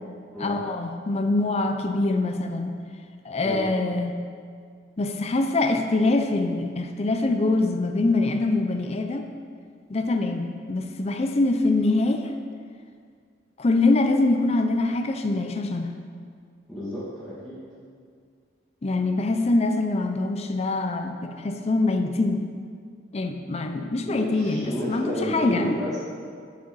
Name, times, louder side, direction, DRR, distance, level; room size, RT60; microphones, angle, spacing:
voice 1, 0.4-2.7 3.2-4.2 5.0-9.2 9.9-12.3 13.6-15.9 18.8-22.4 23.1-25.7, left 2 dB, 35° left, 5 dB, 0.5 m, -24 dB
voice 2, 16.7-17.6 24.0-26.0, equal, ahead, -12 dB, 2.0 m, -30 dB
8.2 x 5.3 x 5.5 m, 2.1 s
head